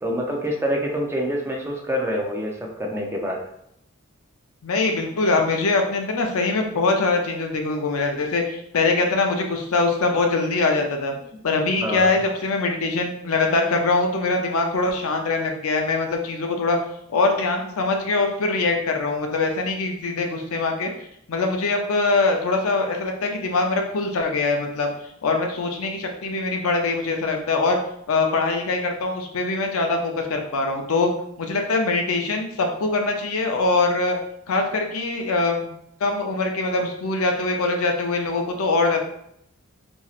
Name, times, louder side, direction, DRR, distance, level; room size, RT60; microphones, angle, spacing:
voice 1, 0.0-3.4 11.8-12.2, equal, 10° right, 0 dB, 0.4 m, -26 dB
voice 2, 4.6-11.1 11.4-16.8 17.1-20.9 21.3-24.9 25.2-27.8 28.1-31.1 31.4-34.2 34.5-35.7 36.0-39.0, left 3 dB, 85° left, 3 dB, 0.5 m, -23 dB
3.0 x 2.6 x 2.4 m, 0.74 s
head